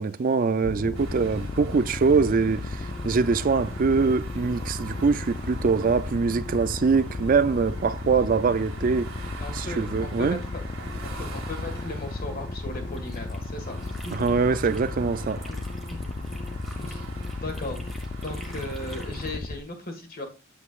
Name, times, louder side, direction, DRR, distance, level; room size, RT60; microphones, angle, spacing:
voice 1, 0.0-10.4 14.1-15.5, right 4 dB, 40° right, 0.4 m, -23 dB
sound 1, 0.6-19.6, left 2 dB, 30° left, 0.4 m, -34 dB
sound 2, 0.9-19.4, right 3 dB, 70° right, 1.8 m, -45 dB
voice 2, 9.4-10.7 11.0-14.3 15.5-16.4 16.8-17.0 17.3-18.0 18.2-20.3, left 2 dB, 45° left, 1.7 m, -37 dB
sound 3, 12.7-14.9 15.2-19.4, right 1 dB, ahead, 1.4 m, -49 dB
8.3 x 7.6 x 2.4 m
head